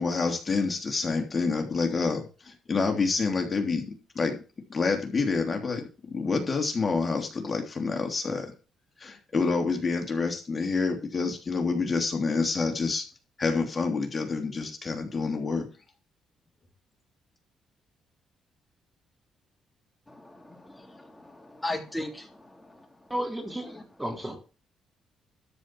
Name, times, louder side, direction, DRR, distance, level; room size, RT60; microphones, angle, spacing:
voice 1, 0.0-4.4 4.7-8.5 9.0-13.0 13.4-15.7, left 4 dB, 30° left, 3 dB, 3.0 m, -28 dB
voice 2, 20.1-23.1 23.6-23.8, left 2 dB, 10° left, 4 dB, 3.2 m, -38 dB
voice 3, 23.1-24.4, equal, 10° right, 4 dB, 3.1 m, -33 dB
13.0 x 5.3 x 7.6 m, 0.35 s
cardioid pair, 90°, 0 cm